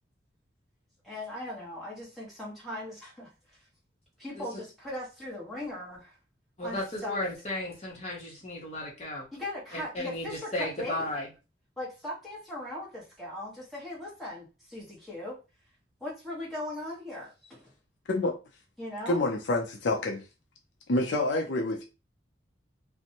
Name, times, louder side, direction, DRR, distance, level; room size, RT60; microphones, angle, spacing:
voice 1, 1.0-3.6 4.2-6.2 6.6-7.2 9.3-11.1 11.8-15.4 16.0-17.7 18.8-19.2, left 1 dB, ahead, 1.1 m, -39 dB
voice 2, 6.6-9.3 9.7-11.3, left 1 dB, 35° left, 0.9 m, -34 dB
voice 3, 19.1-20.2 20.9-21.8, left 2 dB, 70° left, 0.5 m, -27 dB
2.5 x 2.1 x 2.8 m
head